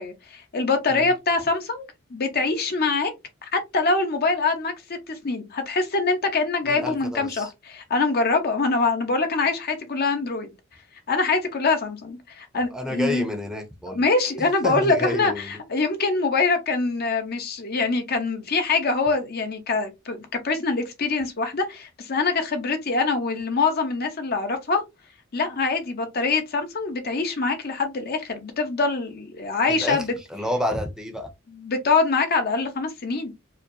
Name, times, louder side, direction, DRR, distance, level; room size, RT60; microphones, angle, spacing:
voice 1, 0.0-3.1 3.5-10.5 11.1-13.3 13.9-24.8 25.3-30.1 31.5-33.3, left 3 dB, 50° left, 0.9 m, -24 dB
voice 2, 6.6-7.5 12.5-14.0 14.4-15.6 29.7-30.0 30.3-31.3, left 1 dB, 5° right, 0.7 m, -30 dB
4.7 x 2.0 x 3.0 m
head